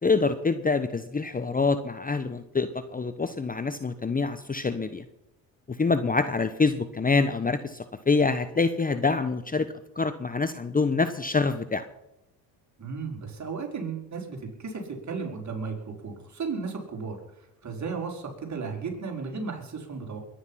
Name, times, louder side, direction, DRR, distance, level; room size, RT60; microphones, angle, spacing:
voice 1, 0.0-5.0 5.7-9.7 10.0-11.8, left 4 dB, 20° left, 11 dB, 1.0 m, -26 dB
voice 2, 12.8-20.2, right 5 dB, 35° right, 1 dB, 5.1 m, -35 dB
22.0 x 10.0 x 5.8 m, 0.83 s
supercardioid pair, 70°, 46 cm